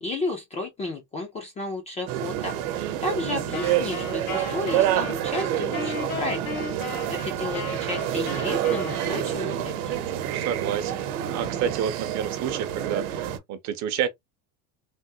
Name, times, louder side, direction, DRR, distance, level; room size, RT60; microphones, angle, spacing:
voice 1, 0.0-6.7 7.1-10.0, left 2 dB, 15° left, 0.4 m, -33 dB
sound 1, 2.1-13.4, right 11 dB, 80° right, 0.9 m, -28 dB
voice 2, 2.8-3.4 10.3-14.1, right 9 dB, 40° right, 0.6 m, -30 dB
Wind instrument woodwind instrument, 3.5-9.5, left 5 dB, 80° left, 1.8 m, -36 dB
3.4 x 2.0 x 2.7 m
cardioid pair, 155°, 44 cm